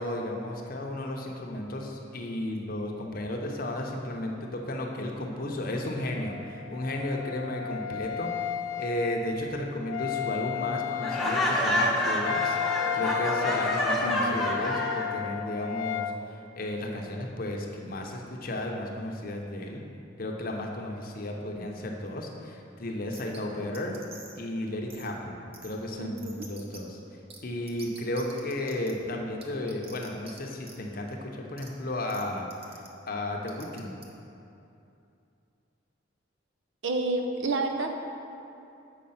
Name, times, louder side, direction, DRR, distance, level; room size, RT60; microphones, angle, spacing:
voice 1, 0.0-8.3 8.8-12.6 12.9-19.8 20.2-23.9 24.3-27.0 27.4-33.9, left 1 dB, 50° left, 1 dB, 0.7 m, -34 dB
Wind instrument woodwind instrument, 6.2-16.2, left 10 dB, 85° left, 0.3 m, -34 dB
Laughter, 11.0-15.1, left 1 dB, ahead, 0.8 m, -27 dB
voice 2, 14.0-14.5 26.0-26.5 36.8-37.9, right 2 dB, 80° right, 4 dB, 0.8 m, -30 dB
sound 1, 23.1-23.4 23.7-24.4 24.9-25.1 25.5-25.7 26.2-26.8 27.3-27.4 27.7-28.9 29.4-30.4 30.6-30.8 31.6-31.7 32.1-32.2 32.5-32.9 33.5-34.0, right 4 dB, 30° right, 0.7 m, -47 dB
7.6 x 4.8 x 5.6 m, 2.7 s
head